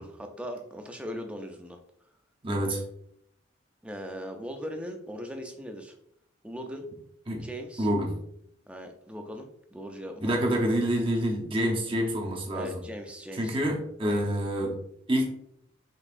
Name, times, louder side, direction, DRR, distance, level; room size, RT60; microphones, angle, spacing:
voice 1, 0.0-1.8 3.8-6.0 6.4-6.9 7.3-7.9 8.7-10.4 12.5-13.6, equal, 5° right, 4 dB, 0.4 m, -39 dB
voice 2, 2.4-2.8 7.3-7.4 7.8-8.1 10.2-12.8 13.4-14.8 15.1-15.3, equal, 25° right, 0 dB, 0.8 m, -27 dB
5.3 x 3.5 x 2.4 m, 0.73 s
head